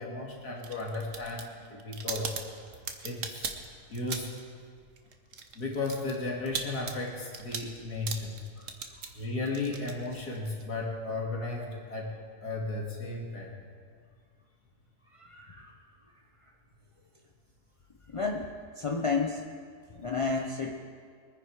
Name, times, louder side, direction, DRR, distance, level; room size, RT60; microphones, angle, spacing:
voice 1, 0.0-2.4 3.0-3.5 3.9-4.3 5.5-8.4 9.1-12.1 12.4-13.5, left 2 dB, 75° left, -2 dB, 3.0 m, -35 dB
sound 1, 0.6-4.5 4.8-10.6, right 6 dB, 55° right, 1.3 m, -39 dB
voice 2, 15.2-15.7 18.1-19.4 20.0-20.8, left 4 dB, 40° left, 1 dB, 0.5 m, -32 dB
22.5 x 9.9 x 4.9 m, 2.1 s
omnidirectional pair, 1.7 m